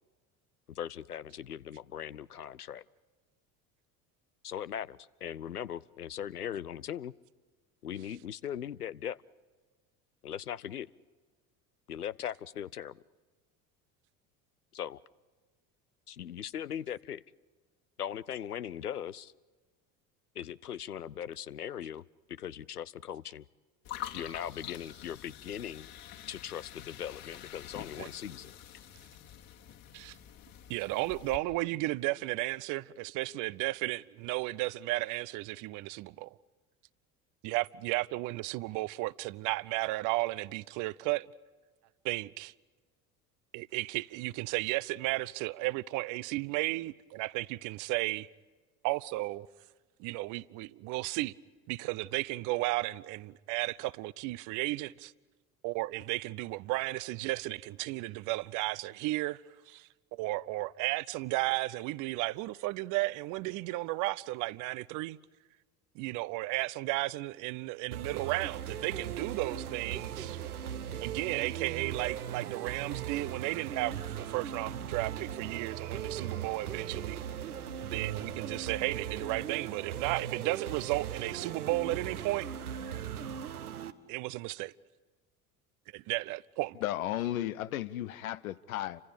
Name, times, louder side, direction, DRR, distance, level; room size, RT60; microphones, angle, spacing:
voice 1, 0.8-2.8 4.4-7.1 7.8-9.2 10.2-10.9 11.9-12.9 14.7-15.0 16.1-17.2 18.0-19.3 20.4-22.0 22.4-23.4 24.1-25.9 26.3-28.5, left 9 dB, 85° left, 0.6 m, -39 dB
sound 1, 23.8-31.4, left 10 dB, 50° left, 2.5 m, -46 dB
voice 2, 30.7-36.3 37.4-41.3 42.0-42.5 43.5-48.3 48.8-49.5 50.0-51.3 51.7-55.1 55.6-59.4 59.7-65.2 65.9-70.4 71.0-77.2 77.8-82.5 84.1-84.7 85.9-86.8, right 20 dB, 45° right, 0.7 m, -34 dB
sound 2, 67.9-83.9, right 9 dB, 80° right, 1.1 m, -39 dB
voice 3, 86.8-89.0, left 13 dB, 65° left, 1.0 m, -34 dB
30.0 x 25.5 x 5.2 m
figure-of-eight pair, 65°, 44 cm